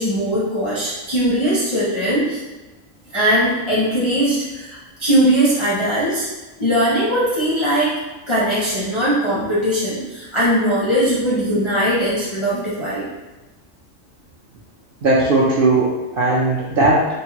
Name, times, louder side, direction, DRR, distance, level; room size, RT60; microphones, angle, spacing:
voice 1, 0.0-2.4 3.1-6.3 6.6-8.0 8.3-13.1, equal, 40° left, -8 dB, 0.4 m, -20 dB
voice 2, 15.0-17.1, right 2 dB, 60° right, -5 dB, 0.6 m, -17 dB
3.1 x 2.2 x 2.8 m, 1.2 s
omnidirectional pair, 1.3 m